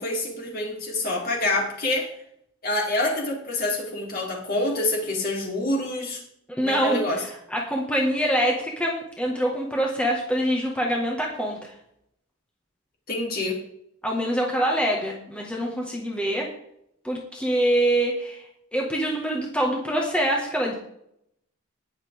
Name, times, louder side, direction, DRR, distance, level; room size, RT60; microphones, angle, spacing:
voice 1, 0.0-2.1 2.6-6.2 6.6-7.2 13.1-13.6, left 2 dB, 45° left, -1 dB, 3.6 m, -26 dB
voice 2, 6.5-11.7 14.0-16.5 17.0-18.4 18.7-20.7, right 1 dB, 5° left, -2 dB, 1.7 m, -25 dB
19.0 x 7.3 x 3.6 m, 0.73 s
head